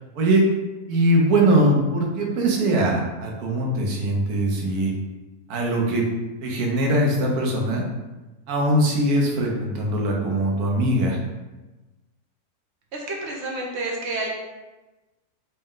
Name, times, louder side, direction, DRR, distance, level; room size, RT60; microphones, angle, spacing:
voice 1, 0.9-4.9 5.5-6.0 6.4-7.8 8.5-11.2, right 1 dB, 80° right, 0 dB, 1.2 m, -21 dB
voice 2, 12.9-14.3, right 2 dB, 55° right, -2 dB, 0.9 m, -29 dB
4.1 x 2.1 x 3.6 m, 1.1 s
omnidirectional pair, 1.6 m